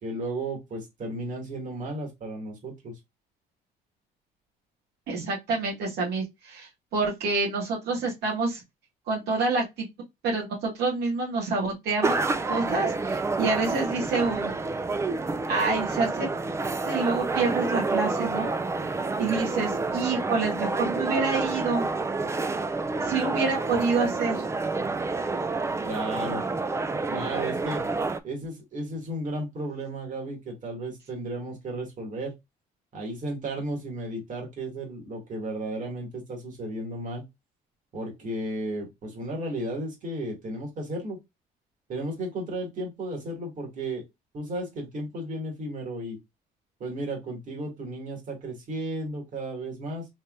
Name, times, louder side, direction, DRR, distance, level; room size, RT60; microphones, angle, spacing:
voice 1, 0.0-2.9 25.8-26.4 27.1-27.8 28.2-32.3 32.9-37.2 37.9-41.2 41.9-44.0 44.3-46.2 46.8-50.1, right 1 dB, 50° right, 2.3 m, -34 dB
voice 2, 5.1-8.6 9.1-9.9 10.2-12.2 12.5-14.5 15.5-16.3 16.9-18.5 19.2-21.8 23.0-24.4, right 3 dB, 75° right, 1.9 m, -27 dB
sound 1, 12.0-28.2, right 3 dB, 15° right, 0.4 m, -29 dB
4.3 x 3.3 x 2.6 m
cardioid pair, 110°, 17 cm